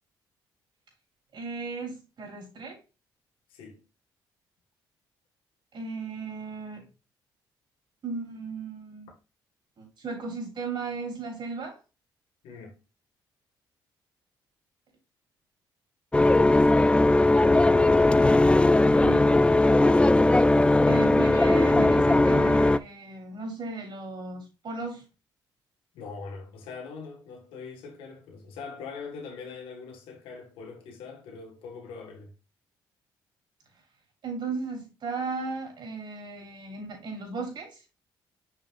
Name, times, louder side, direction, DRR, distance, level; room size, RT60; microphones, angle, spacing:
voice 1, 1.3-2.8 5.7-6.9 8.0-9.1 9.8-11.8 20.9-25.0 34.2-37.8, right 4 dB, 60° right, 3.9 m, -35 dB
voice 2, 3.5-3.8 12.4-12.8 18.9-19.9 25.9-32.3, left 4 dB, 85° left, 1.9 m, -42 dB
sound 1, 16.1-22.8, left 2 dB, 10° left, 0.4 m, -19 dB
6.8 x 5.9 x 2.5 m
supercardioid pair, 70°, 9 cm